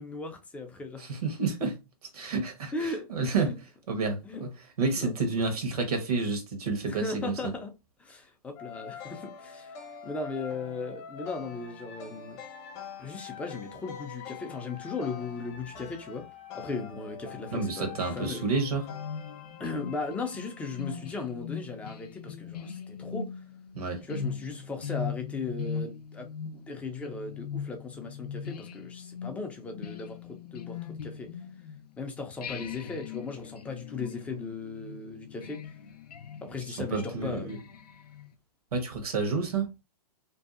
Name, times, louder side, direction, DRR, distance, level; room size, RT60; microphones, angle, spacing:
voice 1, 0.0-1.0 2.7-3.6 4.2-4.4 4.9-5.4 6.8-7.7 8.0-9.7 10.0-12.4 13.0-16.2 16.5-18.5 19.6-23.3 24.0-31.3 32.0-35.6 36.4-37.6, left 3 dB, 5° left, 0.3 m, -37 dB
voice 2, 1.0-1.8 2.1-3.6 3.9-4.5 4.8-7.5 17.5-18.9 23.7-24.0 36.7-37.6 38.7-39.7, right 4 dB, 75° right, 1.0 m, -30 dB
sound 1, 8.6-20.9, left 7 dB, 50° left, 0.8 m, -45 dB
sound 2, 18.9-32.0 32.4-38.3, left 7 dB, 90° left, 0.4 m, -40 dB
2.6 x 2.3 x 2.3 m
hypercardioid pair, 130°, 20 cm